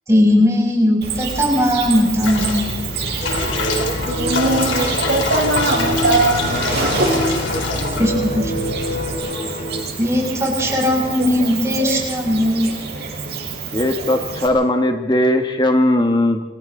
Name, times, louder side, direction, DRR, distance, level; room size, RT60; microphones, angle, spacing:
voice 1, 0.1-2.7 8.0-8.5 10.0-12.7, left 1 dB, 15° right, -2 dB, 6.4 m, -18 dB
Cricket, 1.0-14.5, right 4 dB, 55° right, 6.2 m, -27 dB
sound 1, 2.2-9.2, left 3 dB, 90° left, 3.2 m, -25 dB
sound 2, 3.2-9.8, equal, 45° left, 3.4 m, -27 dB
voice 2, 4.1-6.9 7.2-7.4, right 2 dB, 85° right, 1 dB, 5.1 m, -20 dB
voice 3, 13.7-16.4, left 1 dB, 25° left, 5 dB, 1.4 m, -18 dB
30.0 x 25.5 x 3.8 m, 1.3 s
head